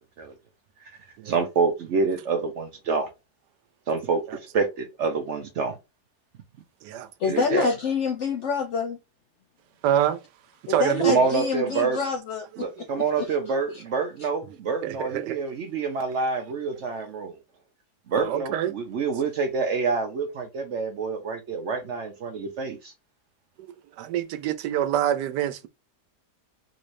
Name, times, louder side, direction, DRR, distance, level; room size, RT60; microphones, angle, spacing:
voice 1, 1.2-3.1 3.9-5.8 7.2-7.7 11.1-12.0 12.6-17.4 18.1-22.9, right 4 dB, 65° right, 0.7 m, -27 dB
voice 2, 7.2-9.0 10.7-12.5 13.2-13.3, left 5 dB, 70° left, 0.7 m, -26 dB
voice 3, 9.8-10.2 10.7-11.1 14.8-15.4 18.1-18.7 23.6-25.7, right 11 dB, 85° right, 1.2 m, -26 dB
3.8 x 3.2 x 2.5 m
omnidirectional pair, 1.8 m